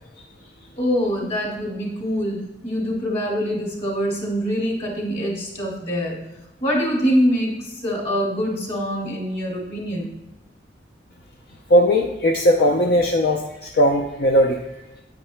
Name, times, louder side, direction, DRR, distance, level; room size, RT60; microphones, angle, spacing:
voice 1, 0.8-6.3 6.6-10.2, equal, 35° left, -2 dB, 2.3 m, -24 dB
voice 2, 11.7-14.6, equal, 60° left, 2 dB, 0.6 m, -18 dB
9.4 x 9.0 x 2.2 m, 0.98 s
head